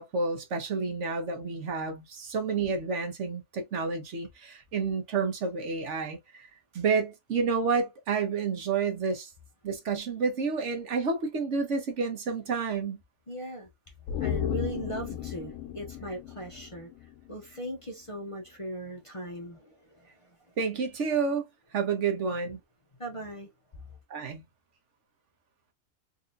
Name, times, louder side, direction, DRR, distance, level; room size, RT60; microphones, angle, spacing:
voice 1, 0.0-6.5 6.7-9.3 9.6-13.0 20.6-21.5 21.7-22.6 24.1-24.4, right 5 dB, 65° right, 1.2 m, -30 dB
voice 2, 13.3-13.7 14.2-16.9 17.3-20.1 23.0-23.5, right 1 dB, 30° left, 0.7 m, -38 dB
sound 1, 14.1-17.5 17.8-17.9, left 10 dB, 80° left, 1.0 m, -35 dB
3.8 x 2.7 x 2.5 m
omnidirectional pair, 1.4 m